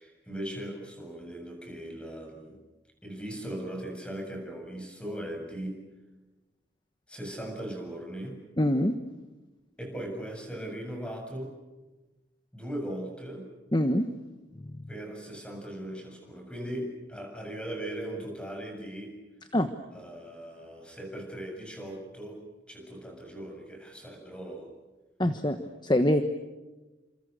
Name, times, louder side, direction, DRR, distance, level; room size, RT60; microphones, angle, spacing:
voice 1, 0.0-2.6 3.0-5.8 7.1-8.4 9.8-11.5 12.5-13.5 14.9-19.1 19.9-22.4 22.7-24.7, right 1 dB, 5° left, 2 dB, 7.5 m, -38 dB
voice 2, 8.6-8.9 13.7-14.0 19.5-19.7 25.2-25.6 25.8-26.2, left 1 dB, 25° left, 8 dB, 1.3 m, -24 dB
30.0 x 27.5 x 6.8 m, 1.1 s
head